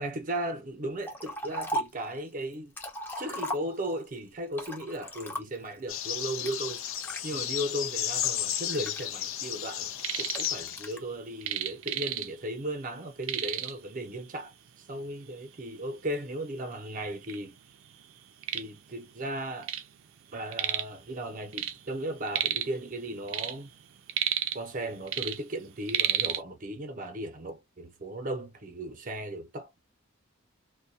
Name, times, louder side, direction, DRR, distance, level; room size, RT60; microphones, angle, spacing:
voice 1, 0.0-2.7 3.1-6.9 7.2-14.5 14.9-17.6 18.5-19.7 20.3-23.7 24.5-29.8, right 1 dB, 40° right, 0.7 m, -36 dB
Liquid, 1.0-2.0 2.5-4.0 4.5-5.7 6.4-7.2 7.8-9.5 10.3-11.0, equal, 10° left, 0.6 m, -37 dB
sound 1, 5.9-10.9, left 10 dB, 85° left, 0.5 m, -33 dB
sound 2, 9.7-10.5 10.8-12.6 12.8-12.9 13.2-13.9 14.7-14.8 15.3-15.4 16.1-16.2 16.5-17.4 17.8-19.9 20.2-21.0 21.3-22.8 23.1-24.8 25.1-26.4, right 11 dB, 85° right, 0.4 m, -32 dB
2.2 x 2.2 x 2.6 m
head